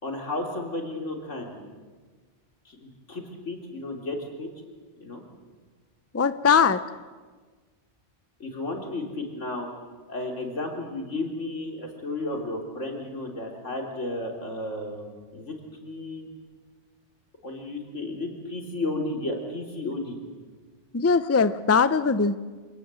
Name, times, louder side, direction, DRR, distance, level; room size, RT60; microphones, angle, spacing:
voice 1, 0.0-1.6 2.7-4.5 5.0-5.2 8.4-9.7 10.1-16.2 17.4-20.2, left 2 dB, 90° left, 2 dB, 3.8 m, -33 dB
voice 2, 6.1-6.8 20.9-22.4, left 5 dB, 20° left, 14 dB, 0.5 m, -21 dB
26.5 x 18.5 x 7.7 m, 1.4 s
omnidirectional pair, 1.2 m